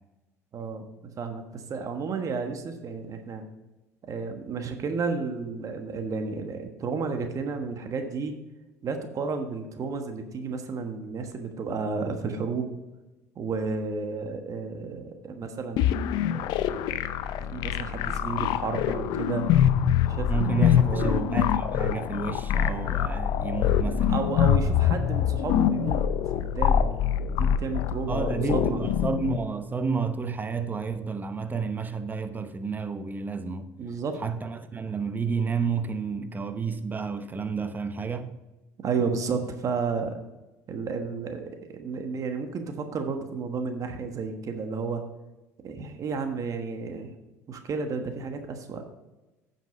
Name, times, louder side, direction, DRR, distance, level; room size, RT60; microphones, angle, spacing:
voice 1, 0.5-0.9 1.2-3.5 4.0-8.4 8.8-12.8 13.3-16.1 17.5-19.4 20.0-21.2 24.1-26.0 26.3-26.9 27.3-28.8 33.8-34.2 38.8-40.2 40.7-45.0 45.6-47.1 47.5-48.9, right 4 dB, 45° right, 1.3 m, -32 dB
sound 1, 15.8-29.4, left 9 dB, 65° left, 0.5 m, -25 dB
voice 2, 20.3-24.3 28.1-33.7 34.2-38.4, right 5 dB, 25° right, 0.8 m, -31 dB
9.2 x 5.9 x 5.1 m
hypercardioid pair, 70°, 8 cm